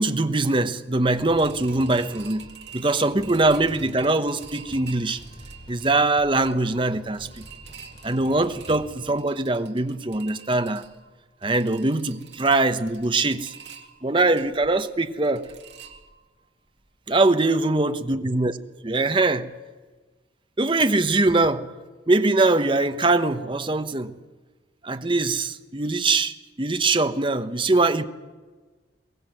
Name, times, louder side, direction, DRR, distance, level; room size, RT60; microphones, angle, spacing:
voice 1, 0.0-2.5 2.7-5.2 5.7-7.4 8.0-10.8 11.4-13.5 14.0-15.5 17.1-18.5 18.8-19.5 20.6-21.7 22.1-24.1 24.8-28.1, right 2 dB, 25° right, 0.9 m, -22 dB
sound 1, 1.2-9.1, equal, 30° left, 3.4 m, -46 dB
sound 2, 1.3-16.4 16.8-16.9 17.3-17.4, right 8 dB, 70° right, 2.2 m, -47 dB
22.5 x 18.0 x 7.8 m
head